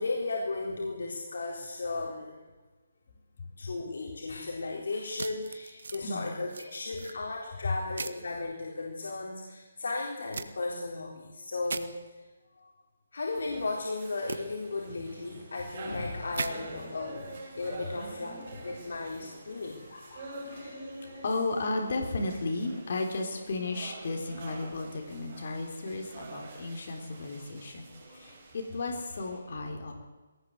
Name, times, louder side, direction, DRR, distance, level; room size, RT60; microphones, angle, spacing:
voice 1, 0.0-2.4 3.6-12.0 13.1-19.9, left 3 dB, 75° left, -1 dB, 4.1 m, -35 dB
sound 1, 5.2-6.0 6.5-7.1 8.0-8.2 10.3-10.5 11.6-11.8 14.3-14.4 16.3-16.5, right 4 dB, 70° right, 1.8 m, -37 dB
voice 2, 5.9-6.6 7.3-7.8 18.6-18.7 19.5-30.1, left 3 dB, 45° left, 2 dB, 4.1 m, -35 dB
sound 2, 13.3-29.4, right 2 dB, 30° right, 6.9 m, -47 dB
22.0 x 18.5 x 8.1 m, 1.2 s
hypercardioid pair, 175°, 0 cm